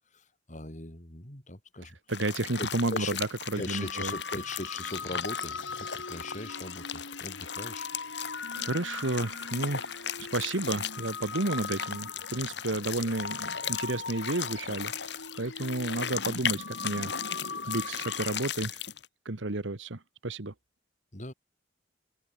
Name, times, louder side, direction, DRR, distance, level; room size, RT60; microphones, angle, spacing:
voice 1, 0.1-2.0 2.6-3.2 3.6-7.9 21.1-21.3, left 2 dB, 40° left, 4.6 m, -40 dB
sound 1, 2.1-19.1, left 8 dB, 65° left, 5.2 m, -37 dB
voice 2, 2.1-4.1 8.5-17.1 17.7-18.8 19.2-20.5, right 2 dB, 85° right, 1.6 m, -32 dB
sound 2, 3.5-18.3, left 4 dB, 85° left, 3.2 m, -41 dB
head